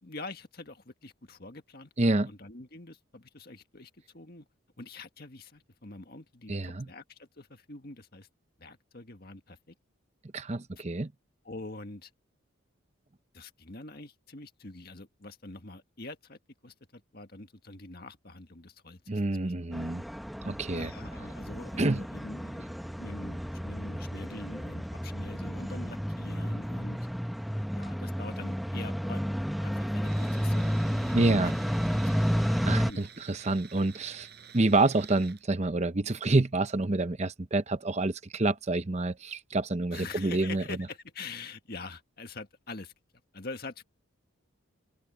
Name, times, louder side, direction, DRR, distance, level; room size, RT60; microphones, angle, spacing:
voice 1, 0.0-4.5 4.8-8.3 8.6-9.7 10.8-10.9 11.4-12.1 13.3-19.9 20.7-27.0 27.7-29.2 29.6-31.5 32.6-33.1 39.9-42.9 43.3-43.8, left 3 dB, 50° left, 1.8 m, -45 dB
voice 2, 2.0-2.3 6.5-6.9 10.3-11.1 19.1-20.0 20.4-20.9 21.8-22.0 31.1-31.6 32.1-32.2 32.7-34.3 34.5-40.6, right 2 dB, 35° right, 0.7 m, -27 dB
sound 1, 19.7-32.9, equal, ahead, 0.9 m, -31 dB
Tools, 30.0-35.4, right 7 dB, 50° right, 7.9 m, -50 dB
open air
head